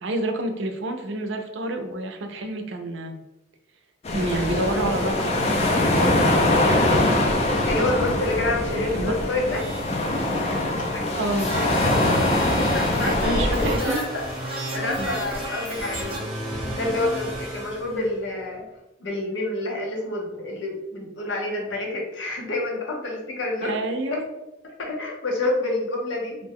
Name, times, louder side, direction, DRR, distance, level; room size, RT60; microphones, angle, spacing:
voice 1, 0.0-3.2 4.1-6.2 8.9-9.1 11.2-11.5 13.0-14.0 15.0-15.2 23.6-24.2, right 2 dB, 85° right, 5 dB, 0.5 m, -28 dB
sound 1, 4.0-13.8, left 1 dB, 35° left, 0.4 m, -23 dB
voice 2, 7.6-9.7 10.9-11.1 12.6-14.2 14.7-16.2 16.7-18.6 19.0-23.8 24.1-24.2 24.8-26.4, left 2 dB, 85° left, -1 dB, 0.8 m, -28 dB
sound 2, 9.5-16.2, right 1 dB, 30° right, 0.5 m, -34 dB
sound 3, 11.7-18.5, equal, 5° right, 0.9 m, -35 dB
2.6 x 2.2 x 3.4 m, 0.96 s
head